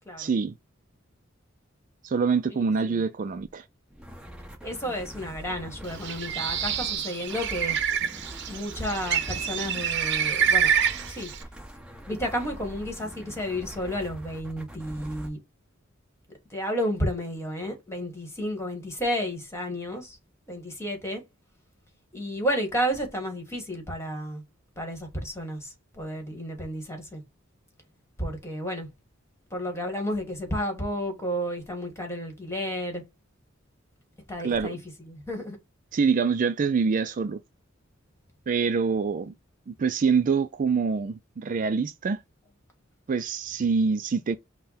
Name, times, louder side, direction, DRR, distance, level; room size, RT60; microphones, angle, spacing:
voice 1, 0.2-0.5 2.0-3.6 34.4-34.8 35.9-37.4 38.5-39.3 39.7-42.2 43.1-44.4, right 5 dB, 40° right, 0.3 m, -25 dB
sound 1, 3.9-15.3, equal, 5° right, 1.1 m, -43 dB
voice 2, 4.6-7.8 8.5-10.7 11.1-11.3 12.1-15.4 16.5-20.2 20.5-21.2 22.1-24.4 24.8-27.2 28.2-28.9 29.5-33.0 34.3-34.8 35.0-35.6, equal, 15° left, 1.6 m, -31 dB
Bird, 5.9-11.4, right 8 dB, 60° right, 0.8 m, -27 dB
5.7 x 2.2 x 4.1 m
head